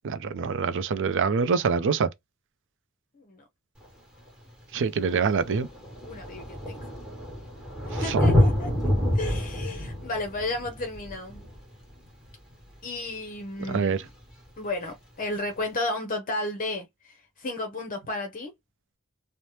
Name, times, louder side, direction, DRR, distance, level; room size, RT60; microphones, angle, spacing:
voice 1, 0.0-2.1 4.7-5.7 7.9-8.2 13.7-14.1, right 5 dB, 55° right, 0.4 m, -25 dB
Thunder, 3.8-3.9 4.9-5.0 5.2-12.5 14.2-14.3, left 1 dB, 5° right, 1.4 m, -27 dB
voice 2, 6.1-6.9 7.9-8.7 9.1-11.4 12.8-14.0 14.6-18.5, left 2 dB, 40° left, 0.7 m, -33 dB
3.2 x 2.1 x 2.7 m
head